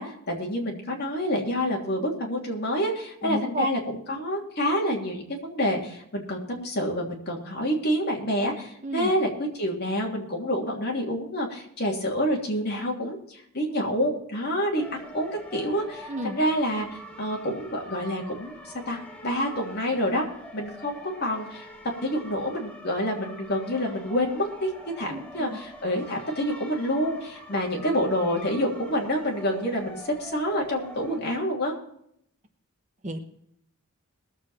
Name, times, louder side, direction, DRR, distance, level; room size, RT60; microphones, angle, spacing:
voice 1, 0.0-20.2 20.5-21.7 22.0-24.7 25.0-31.7, equal, 45° left, -1 dB, 3.0 m, -28 dB
voice 2, 3.2-3.7 8.8-9.1 16.1-16.4 25.1-25.2 33.0-33.2, right 1 dB, 30° right, 6 dB, 1.1 m, -30 dB
sound 1, 14.8-31.2, equal, 5° left, 1.4 m, -44 dB
21.5 x 7.6 x 4.3 m, 0.72 s
head